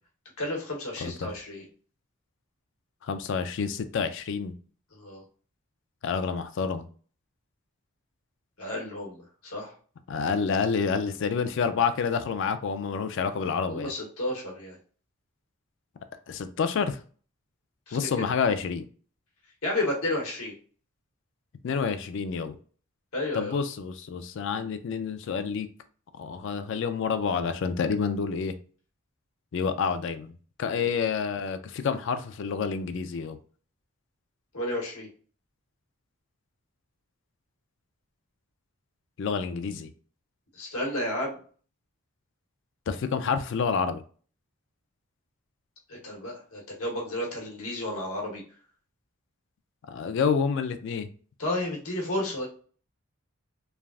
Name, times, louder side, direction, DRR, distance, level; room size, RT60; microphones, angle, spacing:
voice 1, 0.4-1.7 4.9-5.2 8.6-9.7 13.7-14.8 17.9-18.2 19.6-20.5 23.1-23.6 30.7-30.9 34.5-35.1 40.6-41.4 45.9-48.4 51.4-52.5, left 1 dB, 85° left, 1.1 m, -32 dB
voice 2, 3.0-4.5 6.0-6.8 10.1-13.9 16.3-17.0 17.9-18.9 21.6-22.6 23.3-25.7 26.2-28.5 29.5-30.3 30.6-33.4 39.2-39.9 42.9-44.0 49.9-51.1, left 6 dB, 55° left, 0.3 m, -28 dB
3.3 x 2.3 x 2.3 m
head